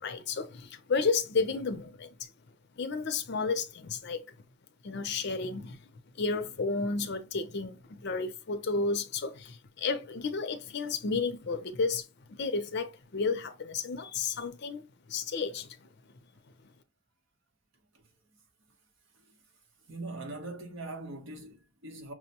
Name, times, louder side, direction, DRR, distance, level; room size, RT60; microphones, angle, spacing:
voice 1, 0.0-2.3 2.8-4.2 4.8-5.8 6.2-15.9, left 4 dB, 55° left, 0.6 m, -32 dB
voice 2, 19.9-22.1, right 2 dB, 65° right, 1.0 m, -41 dB
5.9 x 2.1 x 2.8 m
head